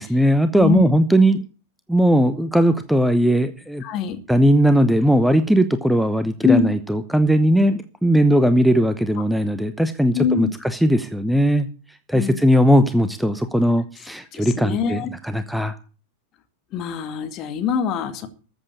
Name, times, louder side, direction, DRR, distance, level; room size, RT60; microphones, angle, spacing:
voice 1, 0.0-1.4 1.9-3.8 4.3-11.7 12.1-15.8, equal, ahead, 11 dB, 0.9 m, -18 dB
voice 2, 3.8-4.2 6.4-6.7 10.1-10.5 12.1-12.4 14.3-15.1 16.7-18.3, left 7 dB, 35° left, 7 dB, 2.2 m, -22 dB
14.0 x 7.8 x 8.4 m, 0.38 s
figure-of-eight pair, 90°, 0 cm